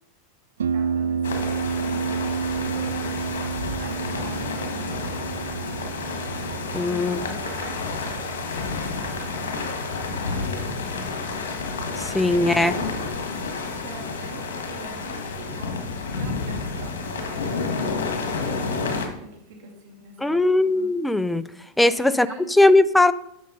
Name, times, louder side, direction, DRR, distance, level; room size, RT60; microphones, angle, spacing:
Harp, 0.6-18.1, right 6 dB, 90° right, 0.3 m, -33 dB
voice 1, 0.7-3.3 3.8-5.5 6.7-10.6 12.1-13.2 13.4-20.9 21.8-22.5, right 3 dB, 70° right, 1 dB, 2.6 m, -43 dB
sound 1, 1.2-19.1, left 4 dB, 85° left, 1.6 m, -30 dB
voice 2, 6.7-7.2 12.0-12.7 20.2-21.4 21.8-22.3 22.6-23.1, left 2 dB, 5° left, 15 dB, 0.4 m, -19 dB
8.3 x 6.5 x 3.8 m, 0.77 s
hypercardioid pair, 100°, 0 cm